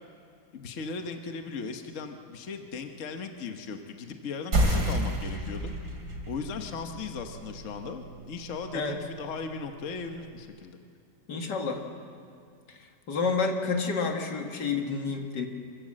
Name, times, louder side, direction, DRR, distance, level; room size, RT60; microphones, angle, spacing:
voice 1, 0.5-5.7 6.3-10.8, left 4 dB, 50° left, 5 dB, 1.4 m, -37 dB
sound 1, 4.5-9.6, right 1 dB, 70° right, 3.3 m, -31 dB
voice 2, 11.3-11.8 12.7-12.8 13.1-15.5, left 4 dB, 85° left, 3 dB, 2.3 m, -29 dB
26.0 x 15.0 x 7.5 m, 2.4 s
omnidirectional pair, 1.8 m